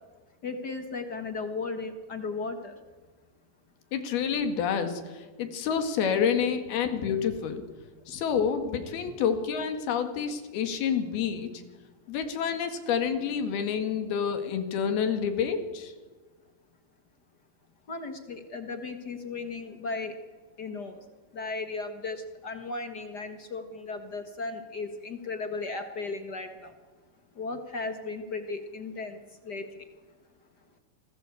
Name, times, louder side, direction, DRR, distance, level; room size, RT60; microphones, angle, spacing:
voice 1, 0.4-2.7 17.9-20.2 20.6-21.0 21.3-26.7 27.4-29.8, left 3 dB, 55° left, 7 dB, 1.1 m, -36 dB
voice 2, 3.9-7.6 8.1-11.5 12.1-15.9, left 7 dB, 80° left, 7 dB, 3.9 m, -28 dB
26.5 x 19.5 x 8.4 m, 1.3 s
omnidirectional pair, 4.4 m